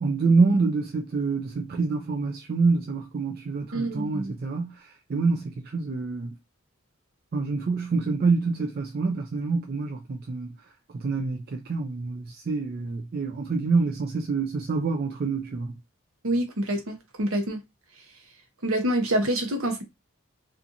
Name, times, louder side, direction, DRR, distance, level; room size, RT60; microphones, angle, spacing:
voice 1, 0.0-6.3 7.3-10.6 10.9-15.7, right 4 dB, 45° right, 0.3 m, -26 dB
voice 2, 3.7-4.3 16.2-17.6 18.6-19.8, right 1 dB, 70° right, 0.8 m, -26 dB
2.7 x 2.4 x 2.5 m
head